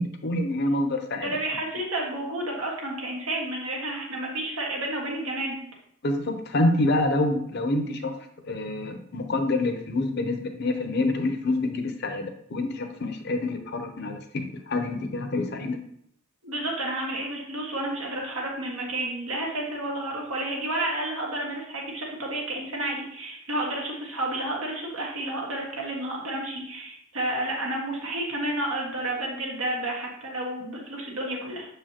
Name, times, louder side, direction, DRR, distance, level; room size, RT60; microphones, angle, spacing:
voice 1, 0.0-1.4 6.0-8.1 8.4-15.8, left 2 dB, 50° left, 6 dB, 0.7 m, -27 dB
voice 2, 1.2-5.6 16.4-31.7, right 1 dB, 80° right, -2 dB, 1.7 m, -31 dB
6.6 x 4.9 x 2.9 m, 0.70 s
head